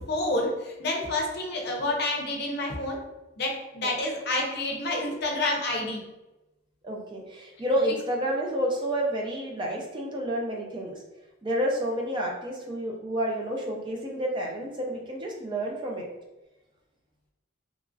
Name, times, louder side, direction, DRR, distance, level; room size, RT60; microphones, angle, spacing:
voice 1, 0.1-3.0 3.4-6.0, left 2 dB, 55° left, 0 dB, 0.6 m, -28 dB
voice 2, 6.8-10.9 11.4-16.1, right 1 dB, 25° right, -1 dB, 0.4 m, -29 dB
2.9 x 2.4 x 2.5 m, 1.0 s
head